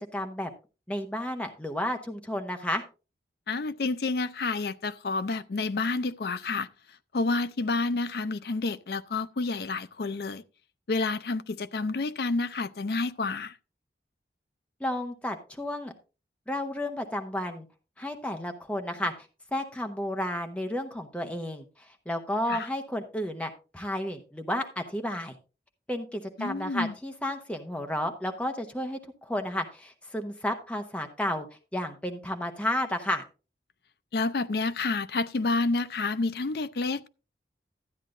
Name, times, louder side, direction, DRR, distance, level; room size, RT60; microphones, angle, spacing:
voice 1, 0.1-0.5 0.9-2.8 14.8-15.9 16.5-17.7 18.0-19.1 19.5-25.4 25.9-31.5 31.7-33.2, left 1 dB, 5° left, 0.9 m, -32 dB
voice 2, 3.5-6.7 7.1-10.4 10.9-13.6 22.5-22.7 26.4-26.9 34.1-37.1, left 3 dB, 60° left, 0.5 m, -29 dB
13.0 x 9.1 x 2.5 m
head